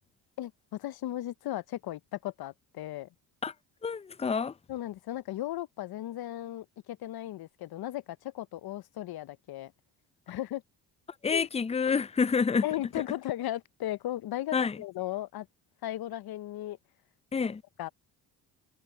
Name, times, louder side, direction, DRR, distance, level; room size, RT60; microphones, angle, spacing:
voice 1, 0.4-3.1 4.7-9.7 10.3-10.6 11.3-11.5 12.6-15.5 15.8-16.8 17.8-17.9, left 14 dB, 65° left, 0.8 m, -36 dB
voice 2, 3.8-4.5 11.2-12.6 14.5-14.8 17.3-17.6, left 5 dB, 15° left, 0.5 m, -28 dB
supercardioid pair, 65°, 41 cm